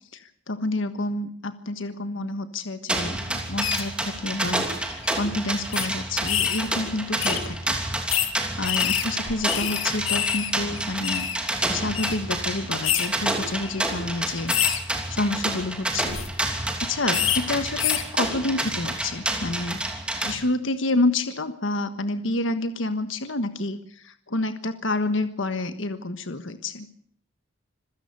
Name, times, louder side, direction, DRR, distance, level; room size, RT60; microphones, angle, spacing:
voice 1, 0.1-7.8 8.6-11.3 11.7-14.5 15.1-19.8 20.2-26.9, left 2 dB, 70° left, 9 dB, 1.4 m, -29 dB
sound 1, 2.9-20.3, right 1 dB, 5° right, 3.0 m, -29 dB
sound 2, 3.6-3.8 4.6-4.8 5.0-5.1 5.7-5.9 6.3-6.7 7.2-7.4 8.1-8.3 8.6-10.5 10.8-11.4 11.9-12.1 12.8-13.1 13.6-13.8 14.5-14.8 16.0-16.3 17.1-17.4 17.8-18.0, left 10 dB, 85° left, 2.3 m, -26 dB
26.5 x 16.5 x 6.8 m, 0.63 s
head